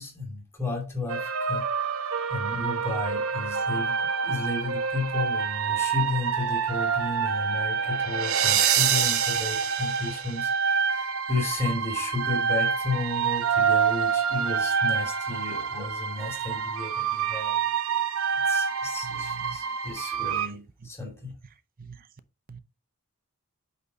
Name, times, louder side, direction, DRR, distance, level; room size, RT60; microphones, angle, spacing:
voice 1, 0.0-1.6 2.3-17.6 18.5-21.3, left 3 dB, 10° left, 2.3 m, -33 dB
sound 1, 1.1-20.5, right 6 dB, 70° right, 1.0 m, -27 dB
voice 2, 19.0-19.6 21.8-22.0 22.5-22.6, right 6 dB, 40° right, 0.6 m, -42 dB
8.4 x 4.1 x 4.0 m
head